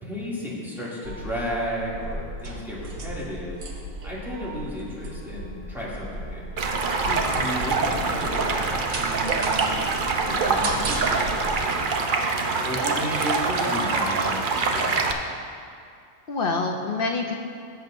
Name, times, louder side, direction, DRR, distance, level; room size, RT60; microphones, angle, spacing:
voice 1, 0.0-3.5 4.0-6.4 7.2-9.7 10.0-11.8 12.6-14.9, equal, ahead, -8 dB, 2.4 m, -33 dB
sound 1, 1.0-11.5, right 1 dB, 75° right, 1.5 m, -36 dB
Stream, 6.6-15.1, right 4 dB, 50° right, 0.7 m, -25 dB
voice 2, 7.1-7.5 16.3-17.3, left 3 dB, 55° left, 3 dB, 0.6 m, -27 dB
16.0 x 7.8 x 2.6 m, 2.3 s
omnidirectional pair, 1.4 m